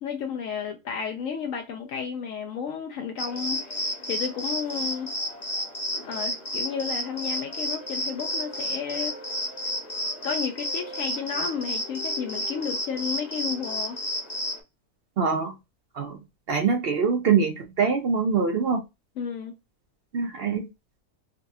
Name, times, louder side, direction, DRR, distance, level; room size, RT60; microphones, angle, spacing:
voice 1, 0.0-5.1 6.0-9.2 10.2-14.0 19.2-19.5, left 7 dB, 70° left, 0.9 m, -32 dB
sound 1, 3.2-14.6, equal, 30° left, 1.0 m, -31 dB
voice 2, 15.2-15.5 15.9-16.2 16.5-18.8 20.1-20.7, right 5 dB, 60° right, 0.6 m, -24 dB
4.0 x 2.3 x 2.7 m
omnidirectional pair, 1.6 m